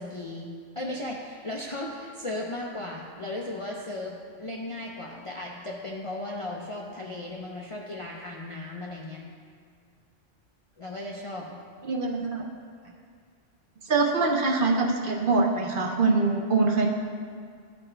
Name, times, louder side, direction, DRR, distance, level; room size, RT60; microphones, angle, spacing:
voice 1, 0.0-9.3 10.8-11.6 12.8-12.9, left 1 dB, 45° left, -3 dB, 0.4 m, -36 dB
voice 2, 11.8-12.4 13.9-16.9, right 3 dB, 55° right, 0 dB, 0.7 m, -24 dB
12.5 x 4.2 x 3.3 m, 2.1 s
omnidirectional pair, 1.2 m